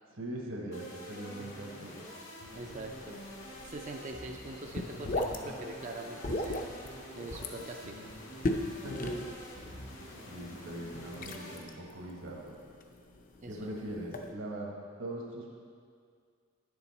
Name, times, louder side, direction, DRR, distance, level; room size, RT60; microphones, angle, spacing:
voice 1, 0.1-2.0 8.8-9.1 9.6-10.0 10.3-12.6 13.4-15.6, right 1 dB, 70° right, -1 dB, 1.3 m, -41 dB
sound 1, 0.7-11.6, left 1 dB, 75° left, 1.9 m, -47 dB
sound 2, 2.5-14.3, left 1 dB, 40° left, 0.5 m, -39 dB
voice 2, 2.5-3.2 3.6-6.8 7.1-8.0 13.4-13.7, right 2 dB, 35° right, 1 dB, 0.4 m, -43 dB
10.0 x 7.0 x 4.1 m, 2.1 s
head